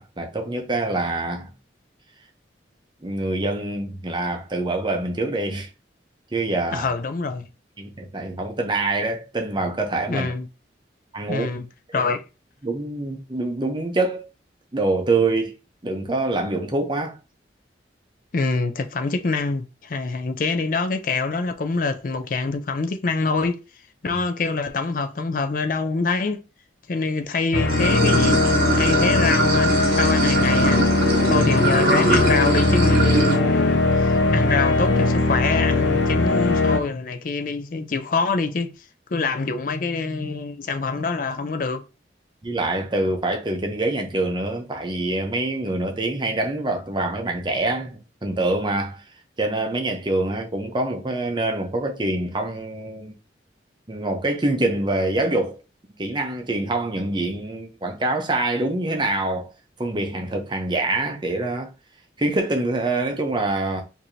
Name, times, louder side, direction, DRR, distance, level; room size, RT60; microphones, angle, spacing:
voice 1, 0.0-1.5 3.0-5.7 6.3-6.9 7.8-10.3 11.1-11.5 11.9-12.0 12.6-14.3 14.7-15.5 15.8-17.2 24.1-24.2 31.3-31.4 33.3-33.6 42.4-49.0 49.4-53.1 53.9-55.6 56.0-59.5 59.8-61.7 62.2-63.8, right 2 dB, 25° right, 0.6 m, -25 dB
voice 2, 6.7-7.5 10.1-10.5 11.3-11.7 11.9-12.2 18.3-23.6 24.0-26.4 26.9-28.5 28.7-30.9 31.3-38.7 39.1-41.8, left 4 dB, 45° left, 0.4 m, -25 dB
sound 1, 27.5-36.8, left 2 dB, 85° left, 0.7 m, -20 dB
Water / Sink (filling or washing), 27.7-33.4, right 2 dB, 50° right, 0.9 m, -23 dB
4.6 x 2.7 x 2.6 m
head